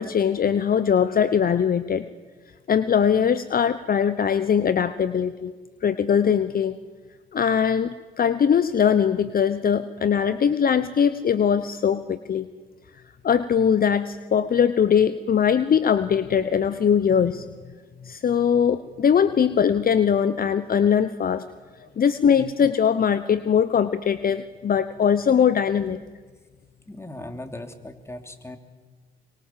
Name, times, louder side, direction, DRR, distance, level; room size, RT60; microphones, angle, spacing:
voice 1, 0.0-2.0 2.7-5.5 5.8-6.8 7.3-12.5 13.2-17.4 18.0-21.5 22.0-26.0, left 7 dB, 45° left, 14 dB, 0.9 m, -21 dB
voice 2, 26.9-28.6, left 1 dB, 10° left, 7 dB, 2.9 m, -38 dB
24.0 x 24.0 x 7.5 m, 1.4 s
hypercardioid pair, 45°, 21 cm